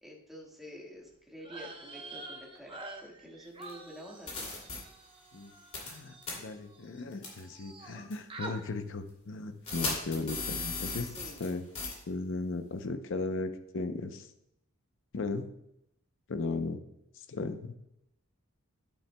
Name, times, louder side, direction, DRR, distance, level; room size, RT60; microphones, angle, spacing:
voice 1, 0.0-4.7 11.0-11.5, equal, ahead, -2 dB, 1.6 m, -49 dB
sound 1, 1.4-7.0 7.3-8.0 8.3-8.6, right 2 dB, 25° right, 0.8 m, -47 dB
sound 2, 3.6-3.7 4.3-4.8 5.7-6.0 6.2-6.3 7.2-7.4 8.1-8.2 9.7-11.5 11.7-11.9, left 4 dB, 30° left, 2.6 m, -35 dB
voice 2, 5.8-11.1 11.4-11.7 12.1-14.3 15.1-15.5 16.3-16.8 17.3-17.8, left 3 dB, 60° left, 9 dB, 0.6 m, -36 dB
10.0 x 8.7 x 2.2 m, 0.81 s
head